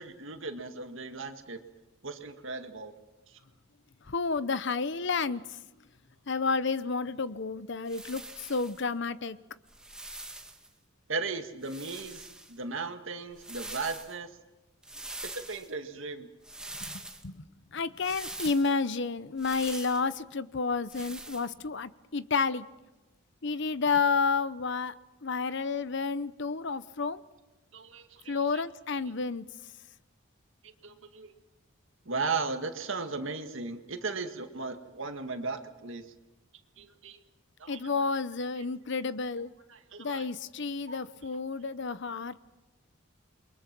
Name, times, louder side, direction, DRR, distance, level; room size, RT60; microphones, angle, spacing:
voice 1, 0.0-1.6 2.0-2.9 11.1-14.3 15.2-16.3 27.7-28.6 30.8-31.3 32.1-36.1 36.8-37.2 37.6-37.8 39.7-40.3 40.9-41.0, right 4 dB, 65° right, 7 dB, 1.9 m, -36 dB
voice 2, 4.0-5.6 6.3-9.4 16.8-17.4 17.7-22.7 23.4-24.9 25.2-27.2 28.3-29.5 37.7-39.5 40.0-42.4, left 4 dB, 55° left, 15 dB, 0.8 m, -30 dB
sound 1, 7.9-8.8 9.7-10.7 11.6-12.5 13.3-14.1 14.8-15.7 16.4-17.2 18.0-18.7 19.4-20.1 20.9-21.5, right 2 dB, 5° right, 1.6 m, -43 dB
28.5 x 22.5 x 6.1 m, 1.1 s
head